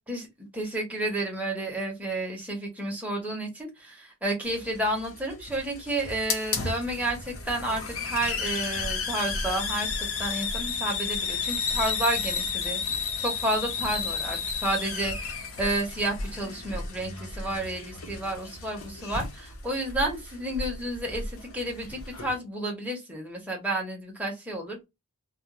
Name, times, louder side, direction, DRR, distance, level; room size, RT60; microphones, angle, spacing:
voice 1, 0.5-24.8, right 1 dB, 5° right, 0.8 m, -31 dB
Hiss, 4.4-22.4, left 5 dB, 70° left, 0.7 m, -33 dB
2.4 x 2.1 x 2.8 m
head